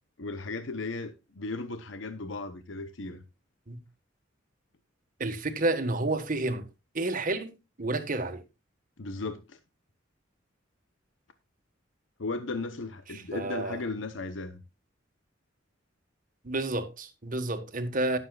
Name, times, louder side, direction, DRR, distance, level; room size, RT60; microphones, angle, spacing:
voice 1, 0.2-3.2 9.0-9.6 12.2-14.6, left 3 dB, 75° left, 0.9 m, -36 dB
voice 2, 5.2-6.6 6.9-7.5 7.8-8.4 13.3-13.8 16.4-18.2, right 2 dB, 45° right, 1.5 m, -30 dB
18.5 x 7.4 x 2.4 m
head